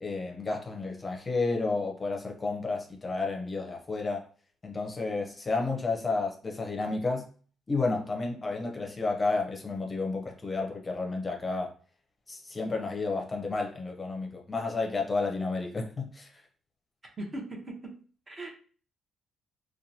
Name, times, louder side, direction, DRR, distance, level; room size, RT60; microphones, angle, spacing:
voice 1, 0.0-4.3 4.6-7.3 7.7-11.7 12.3-16.3, left 3 dB, 25° left, 0.6 m, -31 dB
voice 2, 17.2-18.0 18.3-18.5, right 1 dB, 30° right, 0.8 m, -39 dB
2.9 x 2.2 x 2.7 m
cardioid pair, 90°, 0 cm